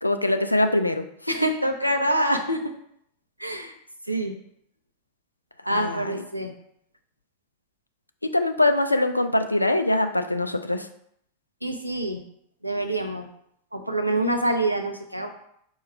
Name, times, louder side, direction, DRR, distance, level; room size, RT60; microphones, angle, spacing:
voice 1, 0.0-1.0 5.7-6.2 8.3-10.9, left 1 dB, 85° left, 8 dB, 0.3 m, -23 dB
voice 2, 1.3-2.6 3.4-3.7 4.1-4.3 5.7-6.5 11.6-12.2 12.6-13.3 13.7-15.3, right 1 dB, 90° right, 4 dB, 0.5 m, -25 dB
4.6 x 2.3 x 4.8 m, 0.71 s
figure-of-eight pair, 90°, 0 cm